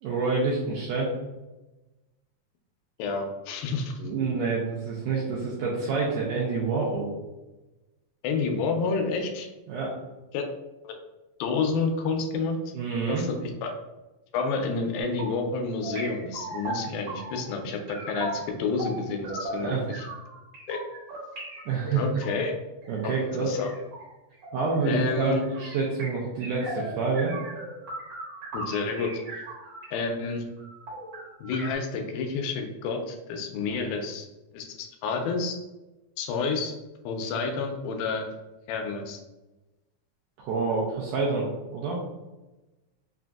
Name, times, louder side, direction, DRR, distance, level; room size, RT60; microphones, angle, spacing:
voice 1, 0.0-1.1 4.0-7.1 9.7-10.0 12.7-13.2 19.5-19.9 21.7-22.1 22.9-23.5 24.5-27.3 40.4-42.0, right 4 dB, 80° right, -5 dB, 1.8 m, -27 dB
voice 2, 3.0-3.9 8.2-9.5 10.3-10.4 10.8-10.9 11.4-12.6 13.1-13.7 14.3-20.0 20.7-20.8 22.0-22.5 23.0-23.1 23.4-23.7 24.9-25.4 28.5-29.4 29.9-30.4 31.4-34.3 34.5-35.6 36.2-36.7 37.1-38.3 38.7-39.2, left 4 dB, 80° left, 4 dB, 2.3 m, -29 dB
sound 1, 15.0-15.5 15.8-17.6 17.9-29.9 30.2-30.3 30.6-31.7, right 2 dB, 55° right, 2.1 m, -38 dB
5.7 x 2.6 x 2.3 m, 1.1 s
omnidirectional pair, 4.3 m